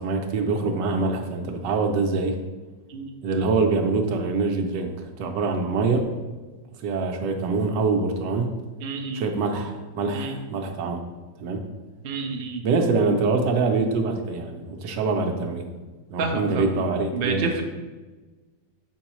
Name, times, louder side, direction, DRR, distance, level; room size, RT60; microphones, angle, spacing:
voice 1, 0.0-2.4 3.2-6.1 6.8-8.5 9.1-11.0 11.4-11.6 12.6-15.7 16.1-17.6, right 4 dB, 85° right, 3 dB, 1.3 m, -24 dB
voice 2, 8.8-9.3 10.1-10.3 12.0-12.6 16.2-16.7 17.1-17.6, right 4 dB, 60° right, 2 dB, 0.5 m, -29 dB
6.2 x 5.4 x 3.0 m, 1.2 s
omnidirectional pair, 1.8 m